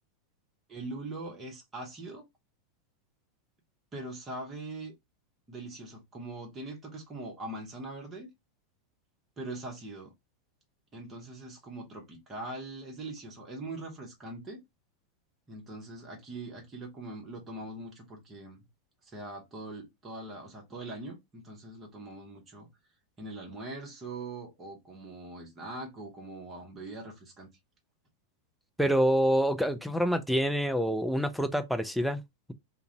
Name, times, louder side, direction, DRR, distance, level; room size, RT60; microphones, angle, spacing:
voice 1, 0.7-2.3 3.9-4.9 5.5-8.3 9.4-10.1 10.9-14.6 15.5-18.6 19.0-22.7 23.2-27.5, right 2 dB, 20° right, 0.9 m, -42 dB
voice 2, 28.8-32.2, equal, ahead, 0.3 m, -26 dB
2.4 x 2.1 x 2.8 m
figure-of-eight pair, 90°, 0 cm